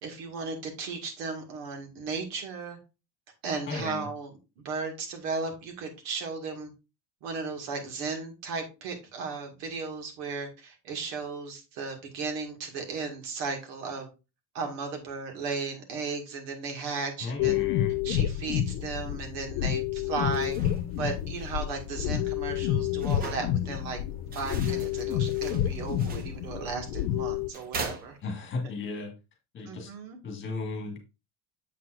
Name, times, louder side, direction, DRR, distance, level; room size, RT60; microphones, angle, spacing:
voice 1, 0.0-2.8 3.4-4.3 4.6-6.7 7.2-14.1 14.5-17.7 18.0-20.5 21.0-24.0 24.3-28.2 29.6-30.2, right 4 dB, 85° right, 4 dB, 2.1 m, -35 dB
voice 2, 3.7-4.1 17.2-18.0 28.2-29.1 29.5-29.9 30.2-31.0, left 3 dB, 25° left, 2 dB, 1.7 m, -35 dB
sound 1, 17.4-27.5, left 11 dB, 80° left, 0.8 m, -29 dB
sound 2, 20.2-28.7, right 4 dB, 20° right, 0.4 m, -43 dB
7.2 x 5.9 x 2.6 m, 0.28 s
cardioid pair, 175°, 47 cm